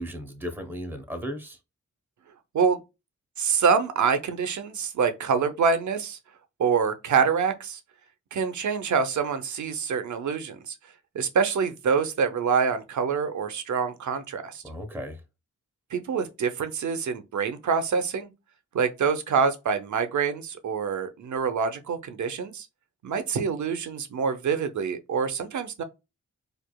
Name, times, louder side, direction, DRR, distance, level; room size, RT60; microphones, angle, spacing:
voice 1, 0.0-1.6 14.6-15.2, equal, 5° right, 0.9 m, -35 dB
voice 2, 3.4-6.2 6.6-7.8 8.3-10.7 11.1-14.6 15.9-18.3 18.7-22.7 23.0-25.8, right 6 dB, 70° right, 0.7 m, -26 dB
4.5 x 2.5 x 2.2 m
cardioid pair, 60°, 30 cm